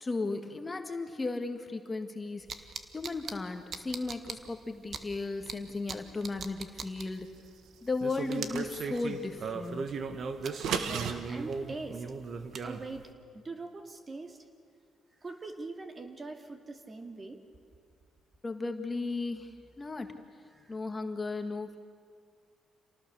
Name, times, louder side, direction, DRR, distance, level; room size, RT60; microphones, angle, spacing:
voice 1, 0.0-7.3 7.8-9.9 18.4-20.2 20.7-21.8, left 3 dB, 25° left, 6 dB, 1.7 m, -35 dB
sound 1, 2.5-3.3 3.7-4.3 4.9-5.0 5.5-5.6 5.9-6.0 6.2-7.0 8.0-13.0, right 5 dB, 55° right, 1.5 m, -37 dB
sound 2, 8.2-9.1 10.4-11.1, right 7 dB, 80° right, 1.6 m, -34 dB
voice 2, 10.4-12.0 12.6-13.0 13.3-14.4 15.2-17.4 20.5-20.8, right 3 dB, 30° right, 5 dB, 2.4 m, -43 dB
28.0 x 19.0 x 6.9 m, 2.3 s
cardioid pair, 90°, 0 cm